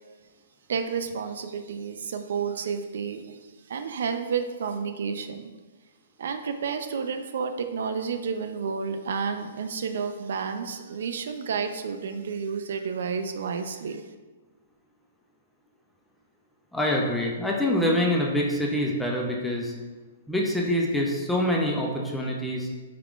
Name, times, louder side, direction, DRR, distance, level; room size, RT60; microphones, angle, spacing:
voice 1, 0.7-3.4 3.7-5.5 6.2-14.0, right 6 dB, 70° right, 7 dB, 0.3 m, -31 dB
voice 2, 16.7-19.7 20.3-22.7, left 1 dB, ahead, -2 dB, 0.4 m, -25 dB
4.6 x 3.5 x 2.4 m, 1.3 s
hypercardioid pair, 165°, 0 cm